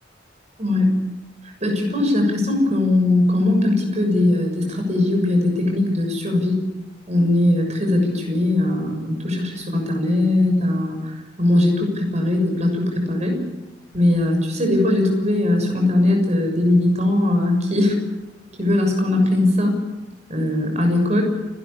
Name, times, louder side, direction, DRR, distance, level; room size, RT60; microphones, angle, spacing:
voice 1, 0.6-0.9 1.6-6.6 7.1-13.4 13.9-18.0 18.6-19.8 20.3-21.2, left 1 dB, 40° right, 3 dB, 6.7 m, -20 dB
29.5 x 12.5 x 8.7 m, 1.0 s
head